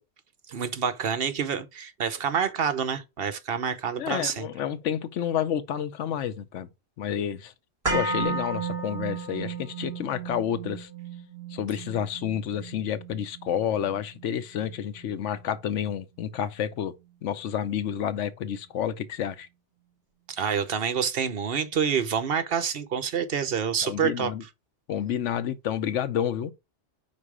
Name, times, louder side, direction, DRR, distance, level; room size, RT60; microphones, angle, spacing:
voice 1, 0.5-4.5 20.3-24.3, right 7 dB, 55° right, 0.9 m, -27 dB
voice 2, 4.0-6.7 7.0-7.5 7.9-10.9 11.5-16.9 17.2-19.5 23.8-24.4 24.9-26.5, left 9 dB, 85° left, 1.0 m, -29 dB
sound 1, 7.8-15.9 16.2-16.3, right 4 dB, 30° right, 3.2 m, -34 dB
5.2 x 4.2 x 4.8 m
omnidirectional pair, 1.2 m